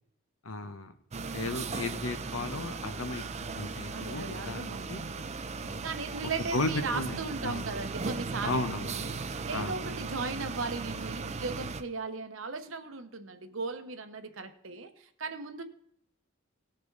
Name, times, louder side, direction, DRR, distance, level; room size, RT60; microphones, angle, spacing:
voice 1, 0.4-0.9 1.3-3.2 3.5-5.0 5.6-5.9 6.5-7.6 8.4-9.1 9.5-9.8, left 2 dB, 90° left, 9 dB, 1.1 m, -35 dB
sound 1, 1.1-11.8, right 4 dB, 35° right, 0.6 m, -37 dB
voice 2, 3.9-5.4 5.8-15.6, right 4 dB, 70° right, 8 dB, 1.1 m, -37 dB
19.0 x 6.5 x 4.0 m, 0.73 s
head